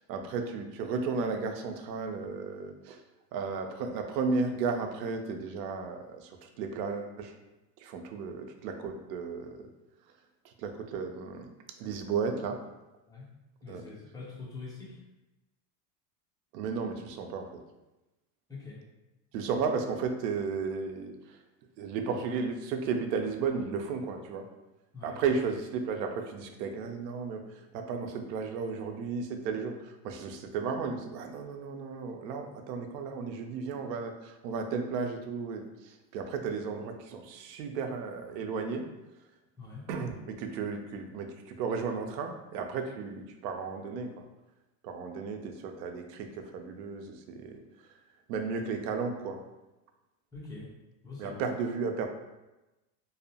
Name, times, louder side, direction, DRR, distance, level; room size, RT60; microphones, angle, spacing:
voice 1, 0.0-3.0 3.3-7.3 7.8-9.7 10.4-11.5 11.8-12.6 13.7-13.8 16.5-17.6 19.3-21.4 21.8-24.5 25.0-38.9 39.9-44.1 44.8-47.6 48.3-49.4 51.2-52.1, right 5 dB, 85° right, 5 dB, 0.6 m, -34 dB
voice 2, 13.6-15.0 18.5-18.8 24.9-25.1 39.6-39.8 50.3-50.7 51.0-51.4, left 3 dB, 10° left, -6 dB, 0.6 m, -44 dB
2.6 x 2.0 x 2.7 m, 1.0 s
supercardioid pair, 120°, 49 cm